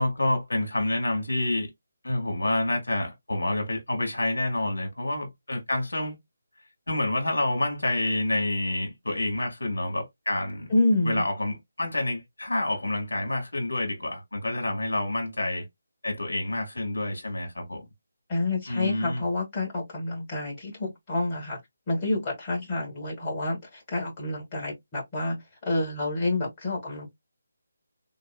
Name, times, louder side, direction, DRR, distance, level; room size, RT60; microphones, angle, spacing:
voice 1, 0.0-1.7 2.0-6.2 6.9-10.7 11.0-15.6 16.0-17.8 18.7-19.2, left 1 dB, 70° left, 1.7 m, -28 dB
voice 2, 10.7-11.2 18.3-21.6 21.9-27.1, left 2 dB, 20° left, 2.0 m, -28 dB
4.0 x 3.5 x 2.2 m
figure-of-eight pair, 150°, 0 cm